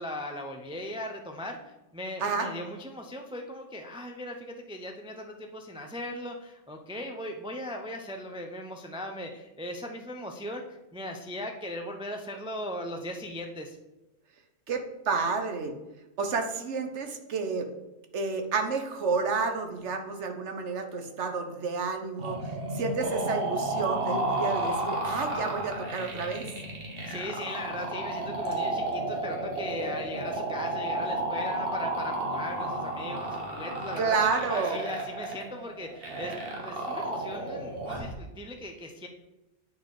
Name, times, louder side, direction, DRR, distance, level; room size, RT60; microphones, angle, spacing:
voice 1, 0.0-10.6 10.9-13.8 27.0-34.2 34.5-36.4 36.6-39.1, left 1 dB, 5° right, 3 dB, 0.4 m, -38 dB
voice 2, 14.7-15.7 16.2-17.7 18.1-26.5 34.0-34.8, right 4 dB, 65° right, 5 dB, 1.3 m, -30 dB
sound 1, 22.2-38.1, right 2 dB, 50° right, 1.6 m, -32 dB
9.3 x 4.2 x 4.8 m, 1.0 s
omnidirectional pair, 1.3 m